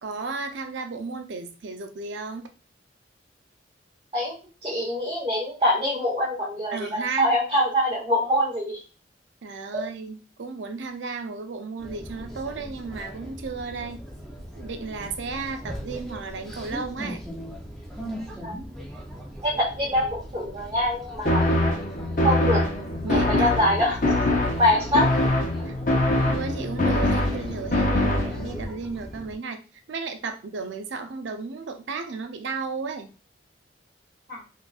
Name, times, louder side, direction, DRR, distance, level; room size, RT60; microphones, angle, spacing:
voice 1, 0.0-2.5 6.7-7.3 9.4-14.0 14.6-17.2 22.2-22.6 23.0-23.6 25.6-25.7 26.2-29.6 29.9-33.1, right 4 dB, 80° right, 7 dB, 0.5 m, -34 dB
voice 2, 4.6-8.8 18.4-18.5 19.4-21.4 22.2-22.6 23.1-24.0 24.6-25.1 34.3-34.4, left 1 dB, 30° right, -7 dB, 1.1 m, -24 dB
sound 1, 11.8-29.4, equal, ahead, 0.6 m, -40 dB
sound 2, 21.3-28.6, left 1 dB, 45° left, 0.7 m, -23 dB
3.9 x 2.5 x 2.4 m, 0.33 s
head